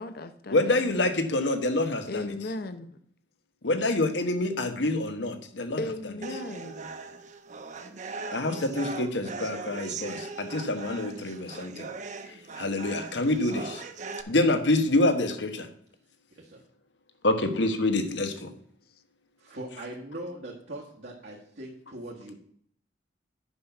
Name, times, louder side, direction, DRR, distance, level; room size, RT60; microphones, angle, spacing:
voice 1, 0.0-1.3 2.1-2.9 5.8-6.9, left 2 dB, 55° left, 0.7 m, -36 dB
voice 2, 0.5-2.3 3.6-5.8 8.3-11.9 12.6-13.8 14.3-15.7 17.2-18.5, left 2 dB, 75° left, 1.3 m, -26 dB
sound 1, 6.2-14.2, right 4 dB, 40° right, 0.8 m, -39 dB
voice 3, 16.3-16.6 19.4-22.3, right 1 dB, 70° right, 1.6 m, -41 dB
9.7 x 5.7 x 5.9 m
head